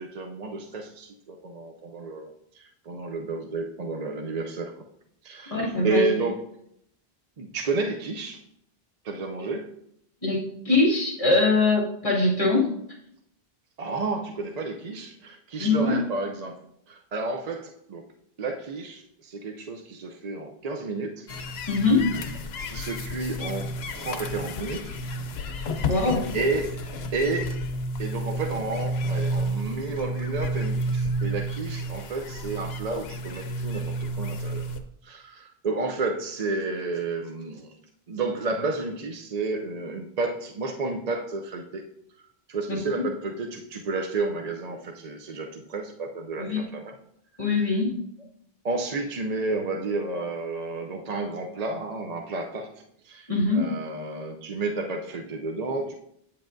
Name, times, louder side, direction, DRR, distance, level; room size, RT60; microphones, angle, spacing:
voice 1, 0.0-2.3 2.5-4.8 5.2-6.4 7.4-8.4 9.0-9.7 13.8-16.6 16.9-18.1 18.4-21.3 22.7-25.0 25.9-26.8 27.1-27.5 28.0-34.6 35.0-37.7 38.1-41.8 42.5-46.9 47.4-47.7 48.6-53.3 53.5-55.9, right 3 dB, 45° right, 3 dB, 0.6 m, -31 dB
voice 2, 5.5-6.1 10.2-12.7 15.6-16.0 21.7-22.1 25.8-26.4 42.7-43.0 46.4-46.6 47.4-47.9 53.3-53.7, left 3 dB, 35° left, -5 dB, 2.3 m, -23 dB
sound 1, 21.3-34.8, right 1 dB, 85° left, 0.9 m, -31 dB
8.5 x 7.3 x 2.6 m, 0.74 s
omnidirectional pair, 1.0 m